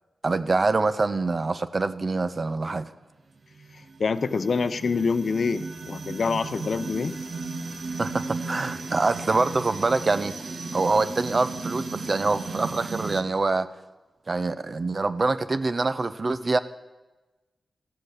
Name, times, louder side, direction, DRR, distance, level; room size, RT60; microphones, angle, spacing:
voice 1, 0.2-2.9 8.0-10.3 10.7-13.7 14.3-16.6, right 3 dB, 50° right, 13 dB, 0.6 m, -25 dB
sound 1, 3.4-13.2, right 3 dB, 70° right, 1.2 m, -35 dB
voice 2, 4.0-7.1, left 4 dB, 70° left, 12 dB, 0.6 m, -26 dB
14.0 x 7.7 x 6.6 m, 1.2 s
cardioid pair, 50°, 0 cm